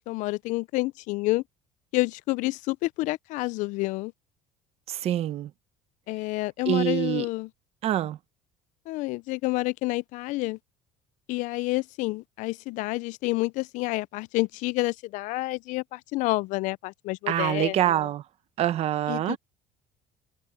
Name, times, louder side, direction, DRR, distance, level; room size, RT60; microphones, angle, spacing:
voice 1, 0.0-1.4 1.9-4.1 6.1-7.5 8.9-10.6 11.3-18.1 19.1-19.4, left 21 dB, 60° left, 0.4 m, -29 dB
voice 2, 4.9-5.5 6.7-7.3 7.8-8.2 17.3-18.2 18.6-19.4, right 12 dB, 45° right, 1.0 m, -25 dB
cardioid pair, 145°, 14 cm